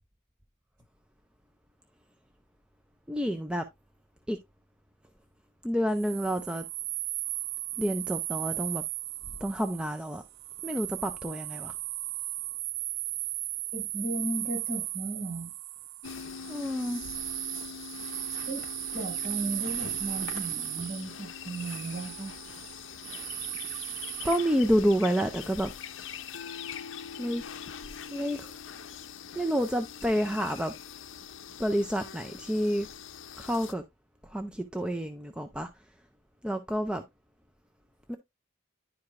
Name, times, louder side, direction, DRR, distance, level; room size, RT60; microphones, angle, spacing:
voice 1, 3.1-3.7 4.3-4.4 5.6-6.6 7.8-8.8 9.4-10.2 10.6-11.7 16.5-17.0 24.2-25.7 27.2-27.4 28.1-28.6 29.4-30.7 31.6-32.9 33.4-33.8 34.2-35.7 36.4-37.0 38.1-38.2, equal, 5° right, 0.3 m, -29 dB
sound 1, 5.9-24.4, right 15 dB, 80° right, 0.3 m, -36 dB
voice 2, 13.7-15.5 18.5-18.6 18.9-22.3, right 2 dB, 45° right, 4.7 m, -35 dB
sound 2, 16.0-33.7, left 7 dB, 70° left, 0.6 m, -43 dB
10.5 x 4.8 x 2.4 m
head